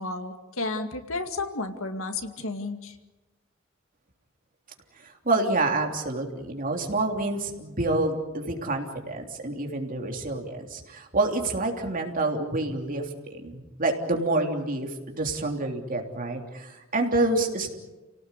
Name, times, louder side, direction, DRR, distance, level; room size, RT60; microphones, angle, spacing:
voice 1, 0.0-3.0, left 3 dB, 75° left, 6 dB, 2.2 m, -32 dB
voice 2, 5.0-17.7, right 2 dB, 40° right, 2 dB, 3.3 m, -28 dB
29.5 x 18.0 x 8.4 m, 1.1 s
head